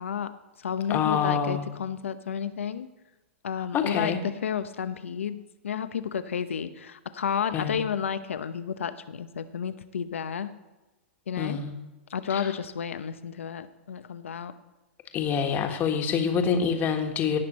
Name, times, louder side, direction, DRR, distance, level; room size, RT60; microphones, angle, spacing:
voice 1, 0.0-2.9 3.4-10.5 11.3-11.6 12.1-14.5, left 7 dB, 90° left, 12 dB, 0.8 m, -31 dB
voice 2, 0.9-1.6 3.7-4.2 7.5-7.8 11.4-11.7 12.3-12.5 15.1-17.4, left 7 dB, 30° left, 4 dB, 1.5 m, -26 dB
17.5 x 6.1 x 4.2 m, 1.1 s
hypercardioid pair, 130°, 7 cm